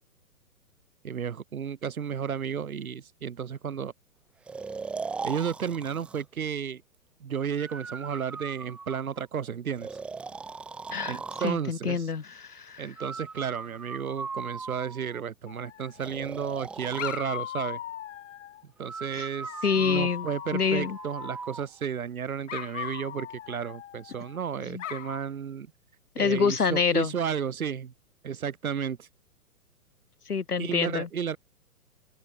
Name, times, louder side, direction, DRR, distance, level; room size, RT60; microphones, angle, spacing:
voice 1, 1.0-3.9 5.2-6.8 7.2-9.9 11.1-12.1 12.8-17.8 18.8-25.7 26.2-27.9 28.2-29.1 30.6-31.4, right 7 dB, 65° right, 3.3 m, -33 dB
Breathing, 4.5-6.2 7.6-9.2 9.8-11.6 13.0-15.2 16.0-17.2 18.8-21.7, right 4 dB, 5° right, 0.5 m, -39 dB
voice 2, 11.4-12.9 19.1-19.3 19.6-20.3 20.5-21.0 24.6-24.8 26.1-27.1 30.3-31.1, left 5 dB, 85° left, 1.6 m, -27 dB
Dog, 15.5-16.3 17.0-18.6 19.4-21.5 22.5-24.4 24.8-25.2, left 11 dB, 55° left, 3.4 m, -39 dB
open air
figure-of-eight pair, 120°, 44 cm